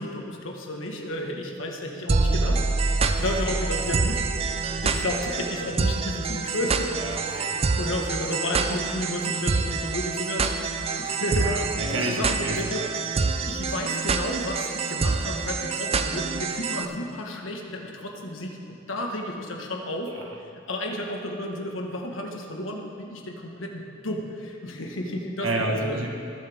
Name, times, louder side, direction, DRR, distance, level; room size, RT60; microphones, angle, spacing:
voice 1, 0.0-4.2 4.6-6.9 7.5-11.6 11.9-12.8 13.5-20.1 20.7-26.0, left 1 dB, 90° left, 1 dB, 1.5 m, -32 dB
sound 1, 2.1-16.8, right 4 dB, 30° right, 0.4 m, -26 dB
voice 2, 6.9-7.5 11.4-12.9 20.1-20.3 25.4-26.1, right 2 dB, 80° right, 1 dB, 1.4 m, -30 dB
19.5 x 7.4 x 3.6 m, 2.5 s
head